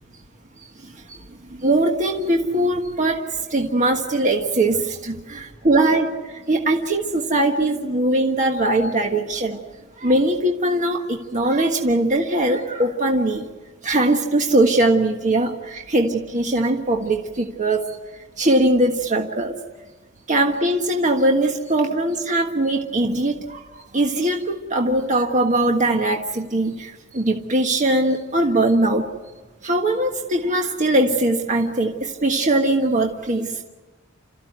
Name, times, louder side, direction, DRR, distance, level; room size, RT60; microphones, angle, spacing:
voice 1, 0.6-1.3 1.6-9.6 10.0-13.5 13.8-19.6 20.3-29.1 29.6-33.6, right 1 dB, 35° right, 2 dB, 1.5 m, -21 dB
29.5 x 14.5 x 9.4 m, 1.3 s
head